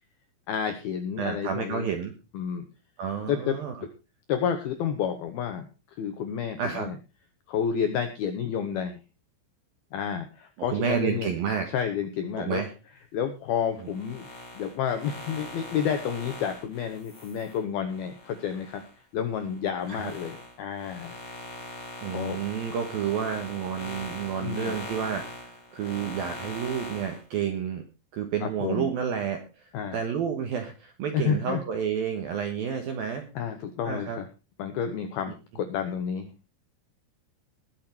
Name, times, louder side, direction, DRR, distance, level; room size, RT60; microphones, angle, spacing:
voice 1, 0.5-1.9 2.3-2.7 3.3-3.6 4.3-7.0 7.5-9.0 9.9-11.3 11.7-12.6 13.1-14.3 14.6-18.8 19.1-21.2 22.1-22.4 24.4-24.7 28.4-28.9 29.7-30.0 31.1-31.6 33.4-34.3 34.6-36.3, left 8 dB, 80° left, 7 dB, 2.2 m, -30 dB
voice 2, 1.2-2.1 3.0-3.8 6.6-6.9 10.7-11.7 12.4-12.7 19.9-20.1 22.0-27.8 28.1-33.3 33.8-34.2, right 7 dB, 75° right, 5 dB, 2.2 m, -30 dB
sound 1, 13.8-18.9 19.4-27.2, left 1 dB, 25° left, 6.1 m, -41 dB
20.5 x 7.1 x 4.5 m, 0.31 s
omnidirectional pair, 6.0 m